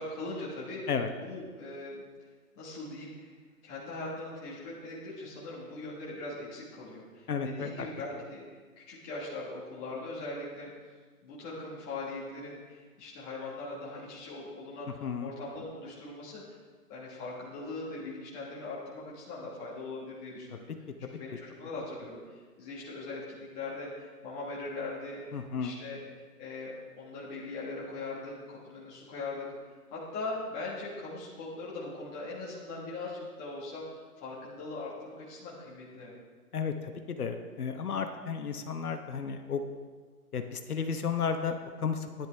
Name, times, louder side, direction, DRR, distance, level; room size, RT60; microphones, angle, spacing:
voice 1, 0.0-0.8 1.2-2.0 2.6-3.3 3.6-8.4 8.8-10.7 11.2-16.6 16.9-20.6 21.0-26.0 26.4-29.5 29.9-36.1, left 2 dB, 10° left, -6 dB, 1.3 m, -40 dB
voice 2, 7.3-7.9 15.0-15.3 21.0-21.1 25.3-25.8 36.5-39.6 40.3-42.1, left 6 dB, 70° left, 6 dB, 1.1 m, -33 dB
13.0 x 10.0 x 3.4 m, 1.5 s
hypercardioid pair, 165°, 46 cm